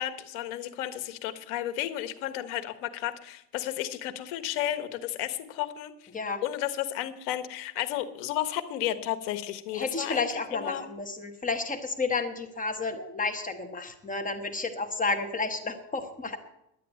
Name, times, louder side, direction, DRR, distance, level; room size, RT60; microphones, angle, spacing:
voice 1, 0.0-5.9 6.4-10.9, left 12 dB, 80° left, 11 dB, 1.4 m, -33 dB
voice 2, 9.7-16.4, left 4 dB, 15° left, 7 dB, 1.1 m, -31 dB
11.5 x 8.5 x 8.9 m, 0.81 s
cardioid pair, 135°, 45 cm